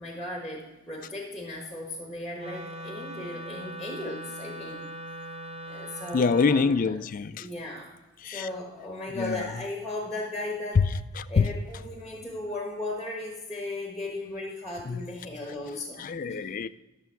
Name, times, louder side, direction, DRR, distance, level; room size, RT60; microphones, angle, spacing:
voice 1, 0.0-4.9 5.6-7.0 7.4-8.0 8.3-10.9 11.3-16.5, left 2 dB, ahead, 1.3 m, -36 dB
Wind instrument woodwind instrument, 2.4-6.7, right 1 dB, 30° right, 0.8 m, -40 dB
voice 2, 6.1-7.5 8.2-8.5 9.1-9.5 10.8-10.9 11.2-11.5 14.9-15.0 16.0-16.7, left 5 dB, 40° left, 0.3 m, -25 dB
12.5 x 6.8 x 4.6 m
head